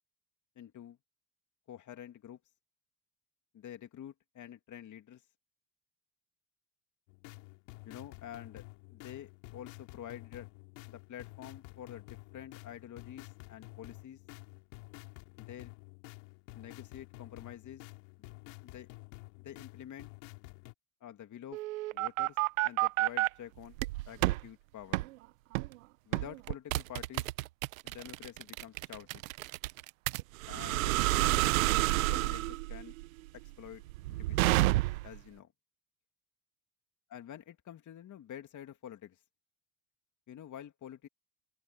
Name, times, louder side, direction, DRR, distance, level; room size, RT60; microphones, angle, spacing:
voice 1, 0.6-1.0 1.7-2.4 3.5-5.2 7.8-8.6 8.9-10.5 10.9-14.2 15.4-15.7 16.5-17.8 18.2-18.3 18.6-18.9 19.4-20.1 21.0-21.6 21.9-22.4 22.6-23.8 24.1-25.0 26.1-27.3 27.8-29.2 30.5-31.6 32.1-32.9 33.3-33.8 34.1-34.6 35.0-35.5 37.1-39.2 40.3-41.1, left 10 dB, 50° left, 2.7 m, -48 dB
sound 1, 7.1-20.7, left 27 dB, 75° left, 2.8 m, -51 dB
sound 2, 21.5-23.3 23.8-24.4 24.9-25.1 25.5-25.8 26.1-35.2, right 19 dB, 85° right, 0.9 m, -30 dB
open air
hypercardioid pair, 70°, 39 cm